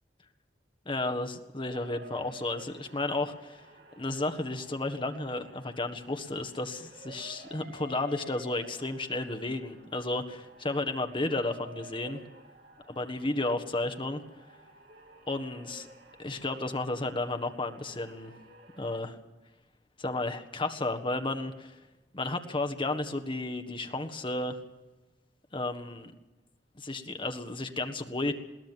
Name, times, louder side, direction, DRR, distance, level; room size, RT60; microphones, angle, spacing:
voice 1, 0.8-3.7 3.9-12.2 12.9-14.2 15.3-15.9 16.2-18.3 18.8-19.2 20.0-21.8 22.1-24.6 25.5-26.1 26.7-28.3, left 2 dB, 30° left, 7 dB, 1.6 m, -33 dB
sound 1, 1.6-19.0, equal, 60° right, 3.5 m, -52 dB
21.5 x 17.0 x 7.5 m, 1.1 s
head